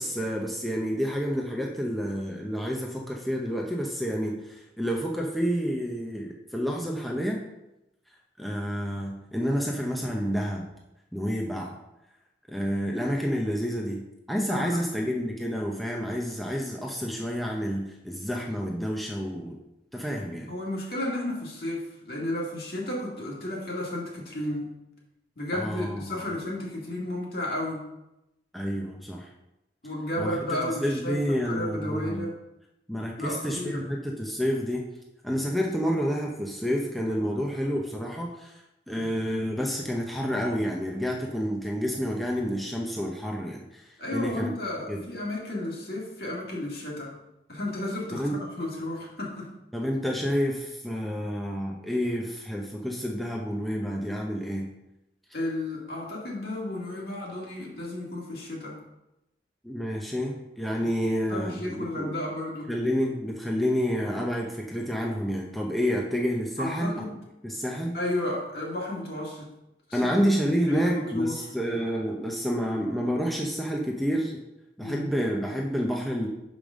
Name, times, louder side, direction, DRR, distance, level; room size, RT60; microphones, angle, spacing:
voice 1, 0.0-7.4 8.4-10.6 11.1-11.8 12.5-19.6 19.9-20.5 25.5-26.2 28.5-29.3 30.2-32.3 32.9-34.9 35.2-44.5 44.9-45.0 48.1-48.4 49.7-54.7 59.6-62.2 62.7-66.9 67.4-68.0 69.9-74.4 74.8-76.3, equal, ahead, -2 dB, 0.7 m, -29 dB
voice 2, 14.5-14.8 20.2-24.7 25.4-27.9 29.8-32.3 33.2-33.8 39.0-39.2 44.0-47.1 47.5-49.5 55.3-58.8 61.3-62.7 66.6-67.2 67.9-69.5 69.9-70.1 70.4-71.5 74.8-75.1, left 1 dB, 60° left, -3 dB, 2.2 m, -33 dB
5.2 x 5.2 x 6.3 m, 0.91 s
head